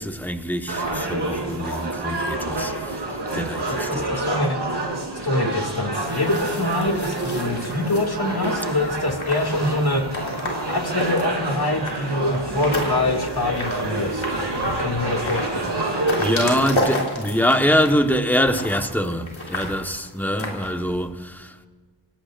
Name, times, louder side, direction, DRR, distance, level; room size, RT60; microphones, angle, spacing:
voice 1, 0.0-3.0 3.3-4.1 16.2-21.7, equal, 5° left, 1.3 m, -24 dB
sound 1, 0.7-16.8, right 2 dB, 65° right, 3.5 m, -27 dB
voice 2, 3.9-4.6 5.2-10.0 10.6-15.7, left 2 dB, 55° left, 2.4 m, -25 dB
sound 2, 6.1-21.1, left 1 dB, 85° left, 3.9 m, -33 dB
28.0 x 17.5 x 2.6 m
wide cardioid pair, 60°, 46 cm